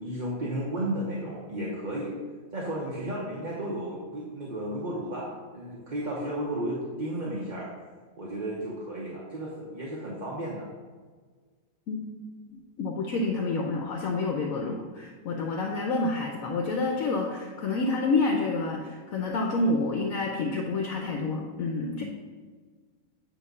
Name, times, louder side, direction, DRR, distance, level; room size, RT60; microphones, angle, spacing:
voice 1, 0.0-2.1 2.5-7.7 8.2-10.7 14.6-14.8 21.9-22.0, right 1 dB, 35° right, -5 dB, 1.0 m, -33 dB
voice 2, 12.5-22.0, left 3 dB, 70° left, 1 dB, 1.1 m, -28 dB
8.5 x 3.0 x 5.3 m, 1.5 s
omnidirectional pair, 1.6 m